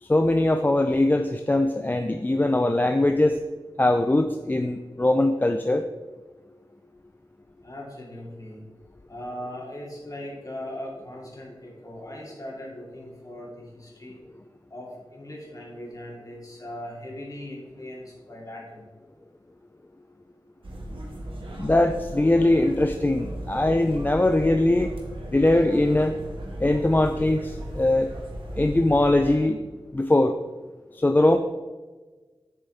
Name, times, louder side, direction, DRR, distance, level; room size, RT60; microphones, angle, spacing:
voice 1, 0.0-3.4 3.8-5.9 21.6-24.9 25.3-26.2 26.6-28.1 28.6-29.6 29.9-30.4 30.9-31.4, left 1 dB, 20° left, 6 dB, 0.4 m, -21 dB
voice 2, 7.6-8.6 9.1-14.2 14.7-18.8, left 1 dB, 40° left, -3 dB, 2.4 m, -39 dB
sound 1, 20.6-29.4, right 1 dB, 85° right, 1.4 m, -37 dB
7.6 x 6.8 x 3.4 m, 1.3 s
wide cardioid pair, 70°, 9 cm